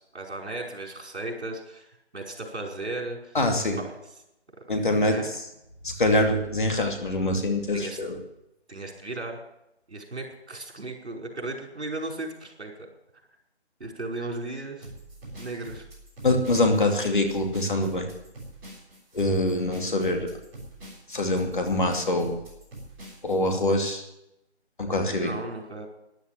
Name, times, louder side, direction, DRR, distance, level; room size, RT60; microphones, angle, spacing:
voice 1, 0.0-3.4 3.8-3.9 5.1-5.3 7.7-8.0 8.7-9.4 9.9-12.7 13.8-14.9 15.4-15.9 25.2-25.9, right 2 dB, 70° right, 1 dB, 5.2 m, -35 dB
voice 2, 3.3-3.8 4.7-5.4 5.8-8.2 16.2-18.1 19.1-20.3 21.1-22.4 23.2-24.0 24.8-25.3, left 1 dB, 45° left, 3 dB, 2.6 m, -24 dB
sound 1, 14.8-23.5, right 1 dB, 5° right, 3.7 m, -44 dB
14.0 x 11.0 x 7.6 m, 0.86 s
figure-of-eight pair, 175°, 34 cm